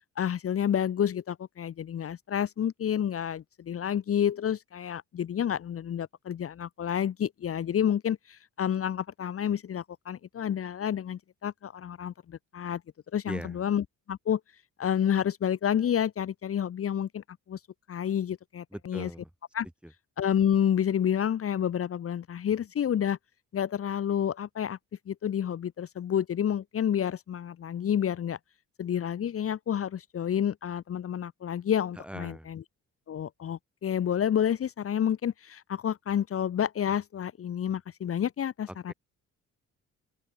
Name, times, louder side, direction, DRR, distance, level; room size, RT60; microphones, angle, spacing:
voice 1, 0.2-12.8 13.1-14.4 14.8-17.6 17.9-19.1 19.5-19.7 20.2-23.2 23.5-24.8 25.1-28.4 28.8-32.6 33.1-38.9, left 9 dB, 50° left, 1.1 m, -29 dB
voice 2, 13.3-13.6 18.7-19.3 19.8-19.9 32.0-32.5 38.7-38.9, equal, 5° right, 2.1 m, -40 dB
open air
cardioid pair, 90°, 30 cm